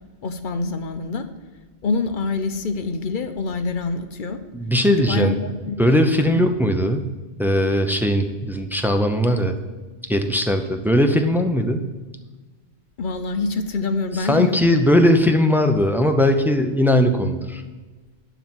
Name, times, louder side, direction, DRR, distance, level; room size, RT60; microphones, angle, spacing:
voice 1, 0.2-1.3 1.8-4.4 4.9-6.0 6.3-6.4 13.0-15.1, left 3 dB, 55° left, 9 dB, 0.9 m, -26 dB
voice 2, 4.5-5.3 5.8-7.1 7.4-9.6 10.1-11.9 14.2-17.6, left 1 dB, ahead, 5 dB, 0.6 m, -19 dB
11.5 x 4.1 x 7.8 m, 1.3 s
omnidirectional pair, 1.1 m